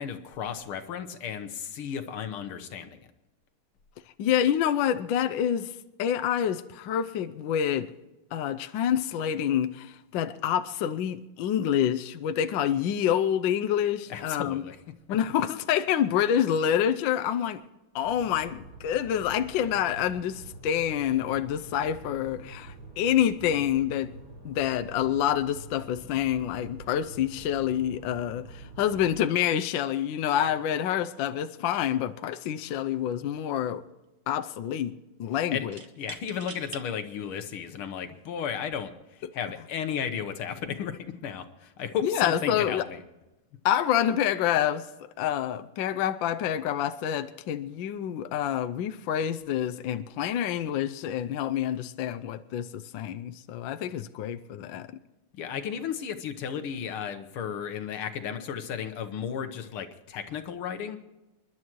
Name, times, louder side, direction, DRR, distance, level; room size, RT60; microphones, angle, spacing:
voice 1, 0.0-3.1 14.1-14.8 35.5-35.7 36.0-43.0 55.3-61.0, left 8 dB, 85° left, 1.9 m, -34 dB
voice 2, 4.2-5.7 6.0-7.9 8.3-14.6 15.1-17.6 17.9-24.1 24.4-33.8 34.3-34.9 35.2-35.8 42.0-42.9 43.6-44.9 45.2-54.9, left 10 dB, 70° left, 1.3 m, -27 dB
sound 1, 18.0-29.2, right 3 dB, 70° right, 4.8 m, -46 dB
sound 2, 32.6-32.8 33.1-33.8 35.7-36.8 37.6-37.7 38.6-38.9, right 6 dB, 50° right, 0.8 m, -45 dB
28.5 x 11.5 x 3.1 m
omnidirectional pair, 2.4 m